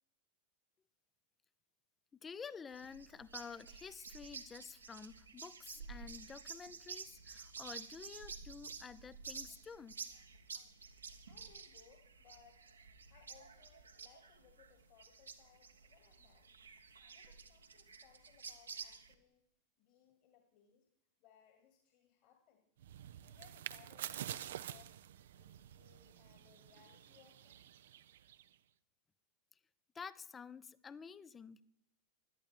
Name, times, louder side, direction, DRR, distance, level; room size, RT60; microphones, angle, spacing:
voice 1, 2.2-10.2 10.5-10.7 17.0-17.1 29.9-31.6, left 6 dB, 20° left, 18 dB, 0.7 m, -50 dB
sound 1, 2.7-19.1, right 5 dB, 75° right, 1.3 m, -51 dB
voice 2, 11.3-12.7 13.1-16.5 17.1-19.4 19.8-20.9 21.2-22.7 23.2-25.0 25.3-27.6, left 9 dB, 45° left, 4 dB, 2.3 m, -66 dB
sound 2, 22.8-28.5, right 11 dB, 60° right, 0.6 m, -48 dB
17.5 x 12.5 x 4.6 m, 0.76 s
figure-of-eight pair, 90°, 0 cm